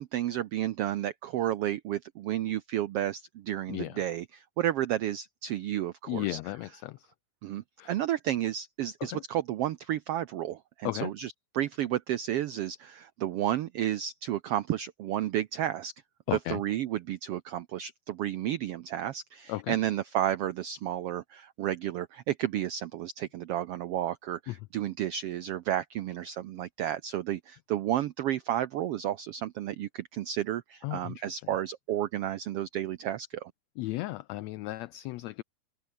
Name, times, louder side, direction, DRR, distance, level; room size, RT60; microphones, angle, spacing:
voice 1, 0.0-6.4 7.4-15.9 16.3-33.5, right 12 dB, 85° right, 1.3 m, -32 dB
voice 2, 3.7-4.0 6.1-7.1 7.8-7.9 9.1-9.2 10.8-11.1 16.3-16.6 19.5-19.8 24.5-24.6 30.8-31.3 33.8-35.4, left 18 dB, 85° left, 1.5 m, -35 dB
open air
omnidirectional pair, 3.6 m